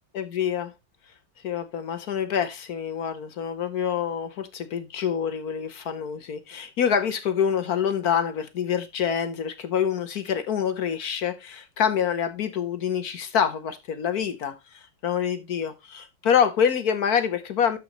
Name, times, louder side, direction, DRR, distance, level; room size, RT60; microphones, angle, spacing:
voice 1, 0.1-0.7 1.4-14.5 15.0-17.8, left 8 dB, 55° left, 1.3 m, -26 dB
13.0 x 5.3 x 3.0 m
omnidirectional pair, 2.2 m